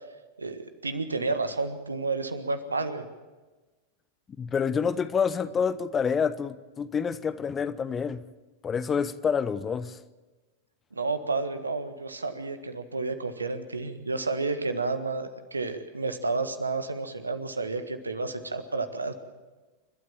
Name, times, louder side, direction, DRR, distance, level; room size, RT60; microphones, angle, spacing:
voice 1, 0.4-3.0 10.9-19.1, right 3 dB, 80° right, 1.5 m, -31 dB
voice 2, 4.4-8.3 8.6-10.0, left 6 dB, 20° left, 0.8 m, -28 dB
29.0 x 12.5 x 7.3 m
figure-of-eight pair, 90°, 0 cm